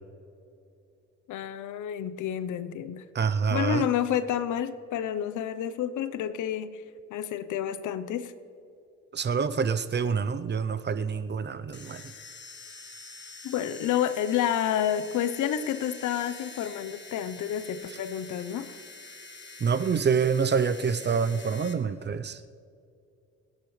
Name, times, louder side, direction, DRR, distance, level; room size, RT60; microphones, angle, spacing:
voice 1, 1.3-3.0 3.5-6.8 7.1-8.3 13.4-18.8, left 9 dB, 80° left, 13 dB, 0.9 m, -29 dB
voice 2, 3.1-3.8 9.1-12.0 19.6-22.5, right 6 dB, 35° right, 13 dB, 0.7 m, -27 dB
sound 1, 11.7-21.7, left 4 dB, 35° left, 1.6 m, -46 dB
28.0 x 10.5 x 3.3 m, 2.6 s
cardioid pair, 90°, 30 cm